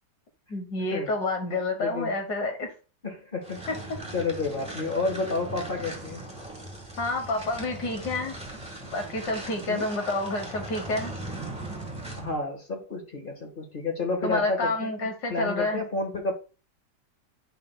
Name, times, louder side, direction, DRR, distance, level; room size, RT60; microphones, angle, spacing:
voice 1, 0.5-2.7 7.0-8.3 8.9-11.1 14.2-15.8, left 2 dB, 70° left, 4 dB, 1.7 m, -29 dB
voice 2, 1.8-2.1 3.0-3.6 4.1-6.2 9.7-9.9 12.2-16.3, left 3 dB, 30° left, 3 dB, 1.5 m, -30 dB
sound 1, 3.4-12.4, right 1 dB, 5° right, 1.5 m, -39 dB
10.0 x 5.1 x 2.3 m, 0.34 s
omnidirectional pair, 1.9 m